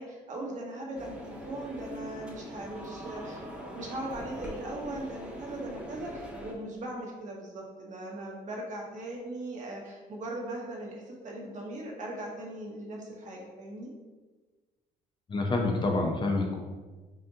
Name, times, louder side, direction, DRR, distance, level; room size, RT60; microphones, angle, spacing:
voice 1, 0.0-3.4 3.7-13.9, right 1 dB, 45° right, -2 dB, 1.1 m, -39 dB
sound 1, 0.9-6.5, equal, 5° right, 0.7 m, -42 dB
voice 2, 15.3-16.6, left 2 dB, 30° left, 1 dB, 0.6 m, -27 dB
5.6 x 2.5 x 2.8 m, 1.3 s
cardioid pair, 110°, 17 cm